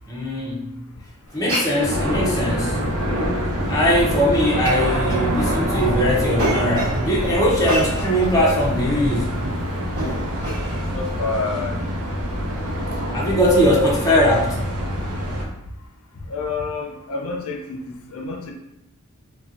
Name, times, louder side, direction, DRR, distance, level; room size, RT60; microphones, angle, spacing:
voice 1, 0.1-0.8 1.3-2.9 3.7-9.4 13.1-14.6, equal, 15° left, -4 dB, 0.6 m, -20 dB
Glass, 1.3-11.2, right 1 dB, 45° right, 1.4 m, -32 dB
sound 1, 1.8-15.4, equal, 90° right, 0.7 m, -25 dB
voice 2, 10.9-11.8 16.3-18.5, left 4 dB, 75° left, 2 dB, 0.5 m, -28 dB
4.1 x 2.2 x 2.4 m, 0.86 s
head